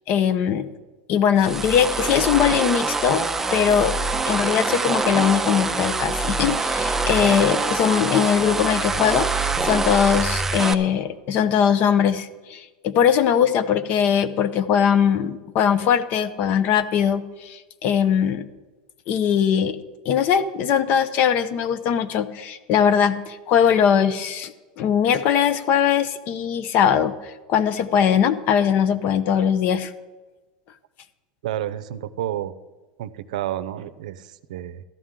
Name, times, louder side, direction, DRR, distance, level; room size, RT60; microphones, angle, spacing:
voice 1, 0.1-0.7 1.1-3.2 3.5-4.0 4.3-18.4 19.1-19.8 20.1-29.9, left 8 dB, 45° left, 14 dB, 0.7 m, -21 dB
sound 1, 1.4-10.7, right 3 dB, 10° right, 0.5 m, -24 dB
voice 2, 31.4-32.5 33.0-34.8, right 12 dB, 85° right, 14 dB, 0.5 m, -30 dB
13.5 x 11.0 x 3.7 m, 1.2 s
supercardioid pair, 135°, 4 cm